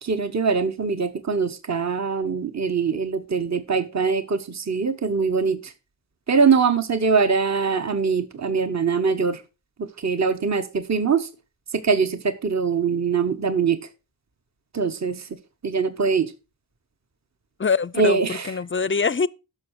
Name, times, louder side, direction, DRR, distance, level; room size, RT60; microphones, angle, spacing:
voice 1, 0.0-5.7 6.3-9.4 9.8-11.3 11.7-13.8 14.7-15.4 15.6-16.3 18.0-18.5, right 5 dB, 40° right, 0.9 m, -23 dB
voice 2, 17.6-19.3, left 5 dB, 30° left, 0.4 m, -24 dB
11.5 x 6.4 x 4.6 m
wide cardioid pair, 45°, 44 cm